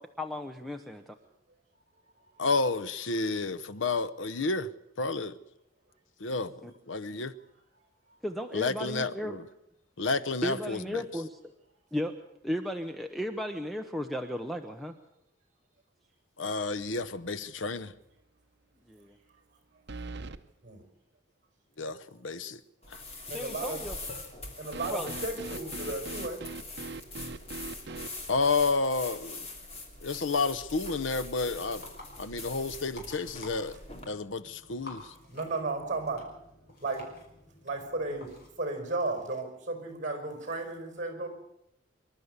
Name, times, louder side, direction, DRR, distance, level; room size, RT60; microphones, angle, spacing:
voice 1, 0.2-1.1 6.6-6.7 8.2-9.4 10.4-11.4 11.9-12.1 12.4-14.9 18.9-19.2 23.3-24.0 24.9-25.1, equal, ahead, 0.9 m, -35 dB
voice 2, 2.4-4.7 5.0-5.3 6.2-7.3 8.5-9.4 10.0-11.0 16.4-17.9 21.8-22.6 22.9-23.0 28.3-29.5 30.0-31.9 32.2-33.8 34.1-35.1, left 3 dB, 80° left, 0.8 m, -30 dB
sound 1, 16.8-17.2 17.6-17.7 19.9-20.4 24.7-28.1, right 3 dB, 60° right, 0.9 m, -41 dB
sound 2, 22.8-34.1, left 3 dB, 35° left, 3.1 m, -43 dB
voice 3, 23.3-23.8 24.6-26.4 35.3-36.3 36.8-37.1 37.6-38.3 38.6-41.3, right 3 dB, 40° right, 5.3 m, -34 dB
sound 3, 31.4-38.5, left 2 dB, 55° left, 5.5 m, -51 dB
25.5 x 12.5 x 8.1 m
head